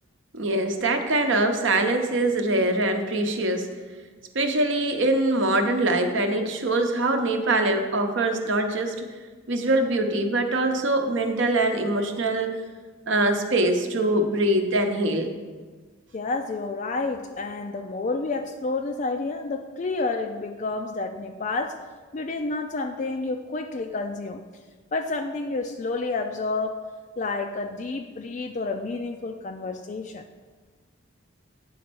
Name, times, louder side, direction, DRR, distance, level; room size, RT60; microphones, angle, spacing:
voice 1, 0.3-3.7 4.3-9.0 9.5-12.5 13.1-15.3, right 2 dB, 60° right, 5 dB, 0.8 m, -23 dB
voice 2, 16.1-21.8 22.1-24.4 24.9-26.8 27.2-30.2, left 3 dB, 35° left, 5 dB, 0.3 m, -29 dB
9.5 x 4.2 x 6.1 m, 1.4 s
head